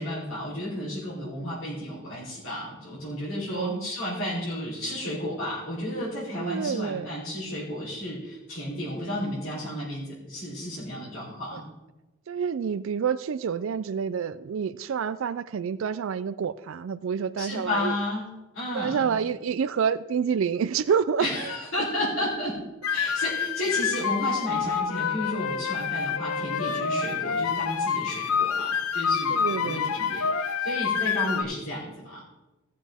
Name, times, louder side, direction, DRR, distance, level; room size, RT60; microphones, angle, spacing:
voice 1, 0.0-11.6 17.4-18.3 18.5-19.1 21.2-22.6 22.9-32.3, left 1 dB, 65° left, -8 dB, 3.7 m, -32 dB
voice 2, 3.4-3.9 6.3-7.1 12.3-18.0 18.7-21.5 26.4-26.5 29.3-30.1, right 7 dB, 65° right, 13 dB, 0.3 m, -28 dB
sound 1, 22.8-31.4, left 6 dB, 90° left, 0.7 m, -27 dB
16.5 x 7.4 x 3.5 m, 1.1 s
head